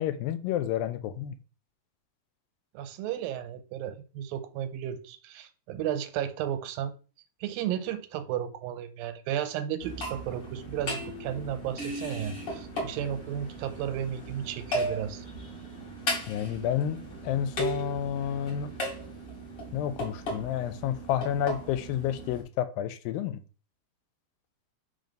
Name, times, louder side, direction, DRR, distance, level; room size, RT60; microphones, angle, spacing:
voice 1, 0.0-1.4 16.3-18.7 19.7-23.4, left 10 dB, 90° left, 2.4 m, -30 dB
voice 2, 2.7-6.9 7.4-15.3, right 10 dB, 90° right, 2.5 m, -34 dB
sound 1, 9.8-22.4, equal, 40° left, 1.9 m, -36 dB
4.9 x 4.0 x 5.2 m
omnidirectional pair, 4.0 m